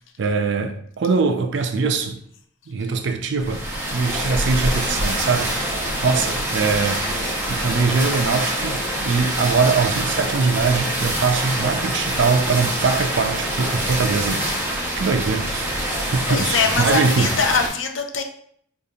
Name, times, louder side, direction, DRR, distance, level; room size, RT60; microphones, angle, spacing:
voice 1, 0.2-2.2 2.7-3.6 3.9-5.8 6.0-7.0 7.5-14.5 15.0-15.7 16.1-17.4, right 4 dB, 65° right, 0.4 m, -22 dB
sound 1, 3.4-17.7, right 1 dB, 10° right, 0.7 m, -25 dB
voice 2, 16.0-18.2, left 5 dB, 75° left, 0.5 m, -23 dB
5.0 x 2.5 x 2.7 m
head